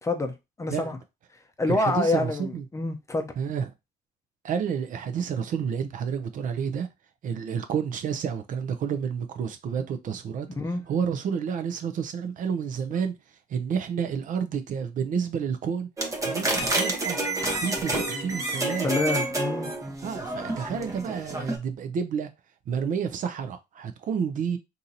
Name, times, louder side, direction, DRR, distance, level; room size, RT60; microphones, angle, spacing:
voice 1, 0.0-1.0 1.6-3.3 10.6-10.8 18.8-19.7, left 2 dB, 20° left, 0.6 m, -27 dB
voice 2, 1.7-2.6 3.4-3.7 4.4-6.9 7.2-10.5 10.9-13.1 13.5-15.9 16.2-17.2 17.6-18.9 20.0-22.3 22.7-24.6, right 7 dB, 50° right, 0.5 m, -30 dB
sound 1, 16.0-21.6, right 2 dB, 20° right, 0.8 m, -29 dB
2.8 x 2.7 x 3.9 m
cardioid pair, 110°, 17 cm